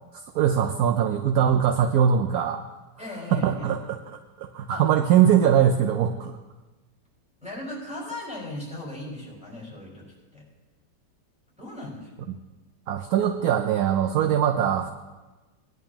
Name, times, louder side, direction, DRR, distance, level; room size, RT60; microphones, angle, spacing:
voice 1, 0.3-2.6 3.3-4.0 4.4-6.3 12.9-14.9, right 9 dB, 70° right, 6 dB, 1.0 m, -21 dB
voice 2, 3.0-3.7 4.7-4.8 7.4-10.1 10.3-10.4 11.6-12.1, left 1 dB, 5° right, -4 dB, 5.0 m, -37 dB
19.0 x 11.0 x 2.9 m, 1.2 s
omnidirectional pair, 1.9 m